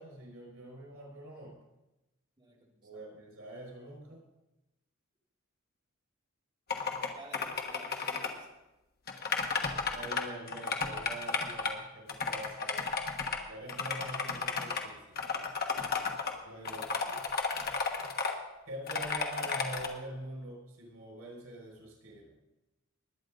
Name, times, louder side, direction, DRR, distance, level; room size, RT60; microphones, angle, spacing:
voice 1, 0.0-1.6 2.8-4.2 7.8-7.9 9.9-12.9 13.5-15.2 16.4-17.2 18.7-22.3, right 1 dB, 90° right, -1 dB, 6.0 m, -44 dB
voice 2, 2.4-3.0 7.1-8.6, right 1 dB, 20° right, -3 dB, 2.6 m, -55 dB
sound 1, 6.7-7.1 7.3-8.3 9.1-10.2 10.5-11.7 12.1-13.4 13.7-14.8 15.2-16.3 16.7-18.3 18.9-19.9, left 5 dB, 45° left, 1.4 m, -33 dB
20.5 x 9.2 x 4.0 m, 0.97 s
head